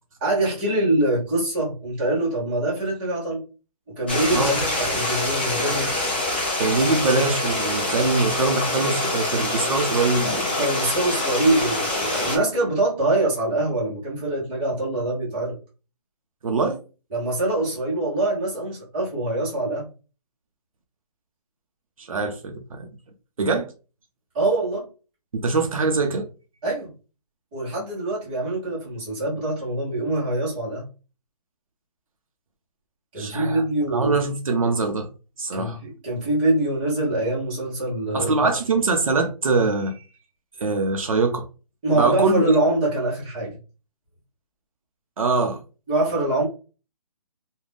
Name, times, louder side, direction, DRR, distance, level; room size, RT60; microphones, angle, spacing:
voice 1, 0.2-3.5 3.9-5.9 10.6-15.6 17.1-19.9 24.3-24.9 26.6-26.9 27.5-30.9 33.1-34.1 35.5-38.5 41.8-43.6 45.9-46.4, right 2 dB, 15° right, 0.7 m, -24 dB
Stream, 4.1-12.4, left 2 dB, 15° left, 0.4 m, -25 dB
voice 2, 6.6-10.5 16.4-16.8 22.0-22.9 23.4-23.7 25.3-26.3 33.2-33.6 33.9-35.1 35.4-35.8 38.1-40.0 40.6-41.5 41.9-42.6 45.2-45.6, right 3 dB, 55° right, 0.6 m, -23 dB
2.5 x 2.1 x 3.3 m
hypercardioid pair, 170°, 21 cm